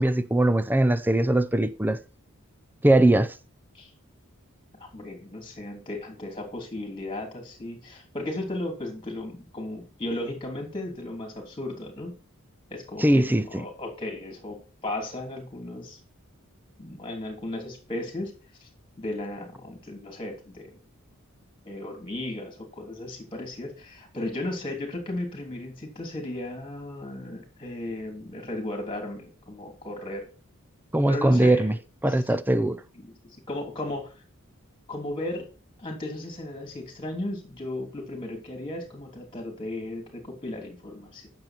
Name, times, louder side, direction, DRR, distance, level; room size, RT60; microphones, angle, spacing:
voice 1, 0.0-2.0 2.8-3.3 13.0-13.6 30.9-31.7 32.0-32.8, right 1 dB, 10° right, 0.6 m, -21 dB
voice 2, 4.8-12.1 12.7-14.6 14.8-16.0 16.8-18.3 18.6-18.7 19.0-20.7 21.6-30.2 31.1-31.7 33.0-33.1 33.5-34.1 34.9-35.5 35.8-41.3, left 1 dB, 25° left, 3.1 m, -35 dB
9.6 x 6.9 x 4.4 m
head